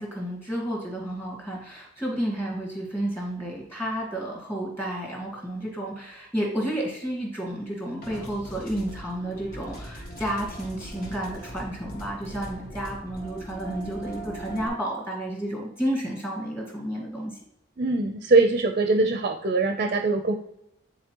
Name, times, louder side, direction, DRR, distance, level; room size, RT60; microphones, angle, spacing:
voice 1, 0.0-17.4, right 1 dB, 10° left, -2 dB, 1.8 m, -31 dB
sound 1, 8.0-14.7, right 1 dB, 45° left, 1.5 m, -40 dB
voice 2, 17.8-20.3, right 3 dB, 40° right, 6 dB, 0.5 m, -22 dB
9.3 x 4.1 x 2.9 m, 0.81 s
head